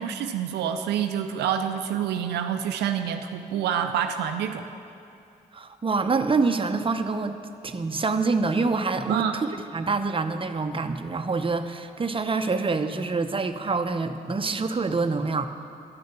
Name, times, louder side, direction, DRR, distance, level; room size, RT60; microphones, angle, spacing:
voice 1, 0.0-4.6 9.1-9.4, right 8 dB, 85° right, 6 dB, 0.5 m, -27 dB
voice 2, 5.5-7.4 7.6-15.5, right 4 dB, 30° right, 7 dB, 0.8 m, -26 dB
11.0 x 6.6 x 8.2 m, 2.5 s
supercardioid pair, 45°, 17 cm